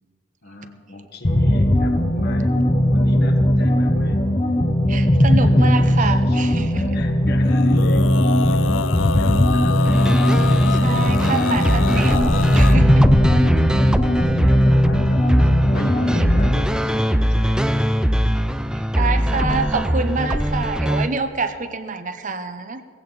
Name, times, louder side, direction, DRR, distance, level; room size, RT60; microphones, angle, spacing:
voice 1, 0.4-4.2 5.2-6.4 6.7-9.9 10.4-11.5 12.9-15.2 15.7-17.9 19.0-19.8 20.4-20.6, left 2 dB, 55° left, 4 dB, 1.4 m, -37 dB
sound 1, 1.2-16.6, equal, 30° left, 0.9 m, -18 dB
voice 2, 4.9-7.0 10.7-13.1 18.7-22.8, right 4 dB, 40° right, 10 dB, 0.8 m, -27 dB
Male singing, 7.4-12.8, left 5 dB, 75° left, 0.4 m, -26 dB
sound 2, 9.8-21.1, equal, 5° right, 0.4 m, -20 dB
18.0 x 15.5 x 4.0 m, 2.2 s
head